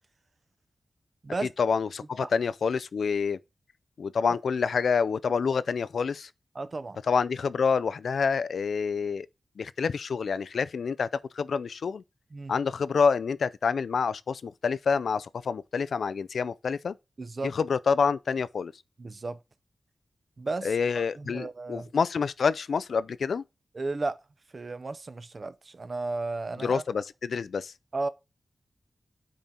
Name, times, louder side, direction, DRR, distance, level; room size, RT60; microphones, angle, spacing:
voice 1, 1.6-3.4 4.0-6.3 7.1-9.3 9.6-11.1 11.3-12.0 12.5-17.0 17.4-18.7 20.6-23.4 26.6-27.7, left 5 dB, 80° left, 0.4 m, -27 dB
voice 2, 6.5-7.0 12.3-12.5 17.2-17.5 19.0-19.4 20.4-21.9 23.7-24.2 24.5-26.8 27.9-28.1, right 3 dB, 40° right, 0.7 m, -34 dB
8.9 x 4.3 x 3.7 m
wide cardioid pair, 140°, 0 cm